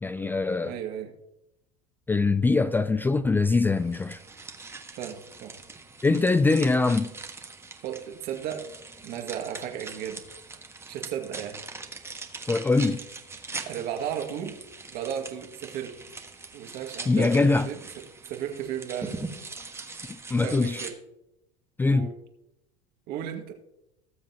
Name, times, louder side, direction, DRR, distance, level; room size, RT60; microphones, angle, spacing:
voice 1, 0.0-0.8 2.1-4.2 6.0-7.1 12.5-13.0 17.1-17.7 20.1-20.8 21.8-22.1, left 3 dB, 10° left, 0.4 m, -23 dB
voice 2, 0.6-1.1 5.0-5.5 7.8-8.7 9.0-10.2 10.9-11.6 13.6-14.6 14.9-15.9 16.5-17.8 18.3-19.2 20.4-20.9 21.9-22.1 23.1-23.5, right 9 dB, 55° right, 2.1 m, -34 dB
sound 1, 3.8-20.9, right 3 dB, 15° right, 1.5 m, -42 dB
19.0 x 7.4 x 2.9 m
hypercardioid pair, 100°, 18 cm